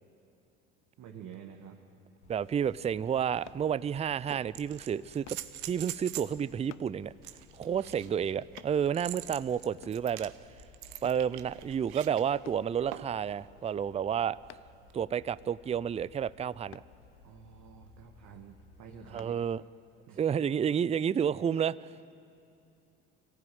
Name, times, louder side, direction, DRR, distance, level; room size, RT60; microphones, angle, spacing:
voice 1, 1.0-1.8 7.6-8.1 17.2-19.4 20.1-20.2, right 7 dB, 55° right, 2 dB, 1.8 m, -49 dB
sound 1, 2.2-19.2, left 3 dB, 80° left, 2.2 m, -58 dB
voice 2, 2.3-5.3 5.6-7.1 7.6-10.3 11.0-14.4 14.9-16.8 19.1-19.6 20.2-21.9, right 8 dB, 20° right, 19 dB, 0.5 m, -30 dB
sound 2, 3.2-3.3 4.3-6.4 7.2-12.2 12.9-13.3 14.9-15.0, right 15 dB, 70° right, 1.1 m, -44 dB
sound 3, 3.5-3.7 5.3-5.5 6.7-6.9 8.6-8.8 9.8-10.1 11.0-11.3 12.4-12.7 14.5-14.8 16.7-16.9 19.2-19.4 19.9-20.1, left 15 dB, 50° left, 0.7 m, -51 dB
24.5 x 15.0 x 9.4 m, 2.7 s
hypercardioid pair, 65°, 34 cm